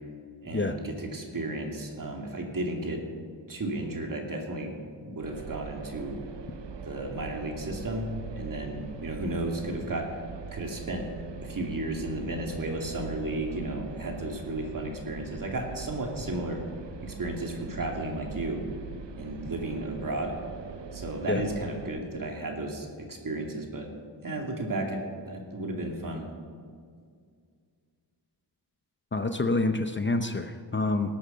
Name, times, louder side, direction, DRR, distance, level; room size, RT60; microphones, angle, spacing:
voice 1, 0.4-3.0 3.5-4.7 5.0-6.2 6.9-8.1 8.3-10.1 10.5-11.1 11.4-16.6 17.0-18.6 19.2-20.3 20.9-23.9 24.2-26.3, right 2 dB, 50° right, 2 dB, 2.5 m, -33 dB
sound 1, 5.2-21.9, right 5 dB, 85° right, 0.9 m, -42 dB
voice 2, 29.1-31.2, left 2 dB, 25° left, 8 dB, 0.7 m, -27 dB
18.5 x 8.4 x 6.7 m, 2.1 s
wide cardioid pair, 95°, 42 cm